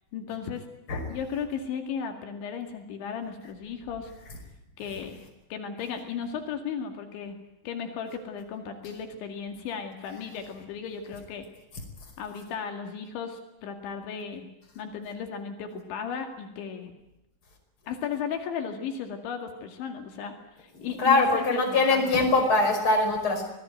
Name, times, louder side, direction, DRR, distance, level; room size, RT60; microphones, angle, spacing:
voice 1, 0.1-0.7 1.1-4.1 4.8-5.2 5.5-7.4 7.6-11.5 12.2-14.5 14.8-16.9 17.9-22.1, left 7 dB, 80° left, 5 dB, 4.5 m, -35 dB
voice 2, 20.8-23.5, left 3 dB, 25° left, 3 dB, 5.7 m, -23 dB
25.5 x 19.0 x 9.2 m, 0.91 s
omnidirectional pair, 5.3 m